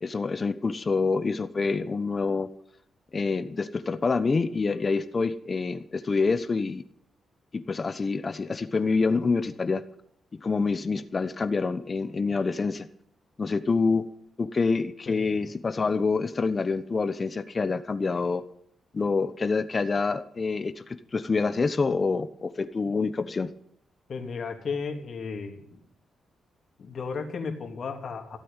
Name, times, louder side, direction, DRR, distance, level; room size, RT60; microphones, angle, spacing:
voice 1, 0.0-2.5 3.1-6.8 7.5-9.8 10.4-12.9 13.4-14.0 14.4-18.4 18.9-23.5, left 4 dB, 35° left, 11 dB, 1.0 m, -27 dB
voice 2, 24.1-25.8 26.8-28.4, left 5 dB, 55° left, 4 dB, 3.2 m, -34 dB
16.5 x 8.7 x 9.1 m, 0.70 s
cardioid pair, 95°, 0 cm